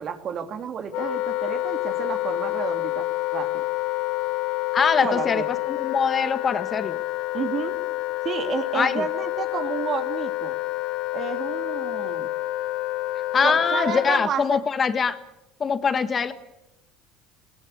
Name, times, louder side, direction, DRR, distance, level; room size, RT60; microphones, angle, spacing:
voice 1, 0.0-3.6 5.0-5.5 7.3-7.8 8.2-10.5 11.1-12.3 13.4-14.6, right 7 dB, 50° right, 7 dB, 2.8 m, -31 dB
Wind instrument woodwind instrument, 0.9-14.3, left 18 dB, 70° left, 1.1 m, -28 dB
voice 2, 4.7-7.0 8.7-9.0 13.3-15.2 15.6-16.3, left 6 dB, 35° left, 11 dB, 1.6 m, -23 dB
20.5 x 18.5 x 8.6 m, 0.90 s
supercardioid pair, 90°, 0 cm